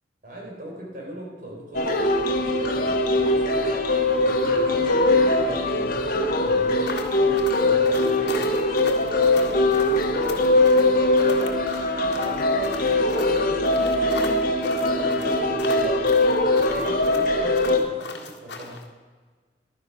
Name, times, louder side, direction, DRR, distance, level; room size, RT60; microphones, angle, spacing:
voice 1, 0.2-8.5 9.0-11.6 12.1-14.2 14.9-16.0 16.6-18.8, right 1 dB, 55° right, -2 dB, 4.6 m, -39 dB
sound 1, 1.7-17.8, left 2 dB, 55° left, 1.4 m, -21 dB
sound 2, 6.9-18.8, left 4 dB, 75° left, 1.5 m, -39 dB
11.5 x 10.0 x 5.8 m, 1.5 s
head